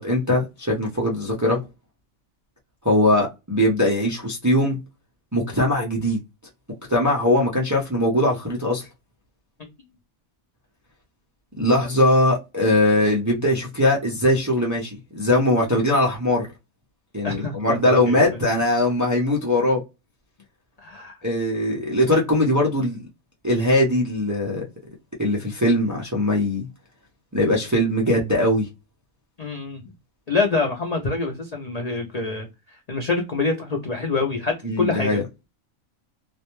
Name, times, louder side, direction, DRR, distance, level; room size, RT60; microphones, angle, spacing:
voice 1, 0.0-1.6 2.8-4.8 5.3-6.2 6.9-8.9 11.6-16.5 17.1-19.8 21.2-23.0 23.4-24.6 25.2-26.7 27.3-28.7 34.6-35.2, left 1 dB, 25° right, 0.4 m, -21 dB
voice 2, 17.2-18.2 20.8-21.2 29.4-29.8 30.3-32.5 32.9-35.1, left 3 dB, 60° left, 0.4 m, -25 dB
2.4 x 2.2 x 2.9 m
omnidirectional pair, 1.4 m